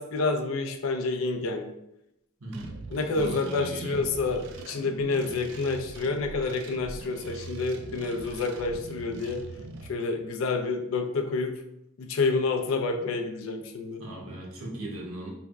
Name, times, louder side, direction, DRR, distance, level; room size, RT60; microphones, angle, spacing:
voice 1, 0.0-1.7 2.9-9.4 9.9-11.6 12.0-14.0, left 3 dB, 70° left, 5 dB, 0.4 m, -28 dB
voice 2, 2.4-2.7 3.1-4.0 14.0-15.3, right 1 dB, 85° right, -3 dB, 0.9 m, -37 dB
sound 1, 2.5-9.9, right 3 dB, 60° right, 0.4 m, -42 dB
3.4 x 2.0 x 3.4 m, 0.84 s
head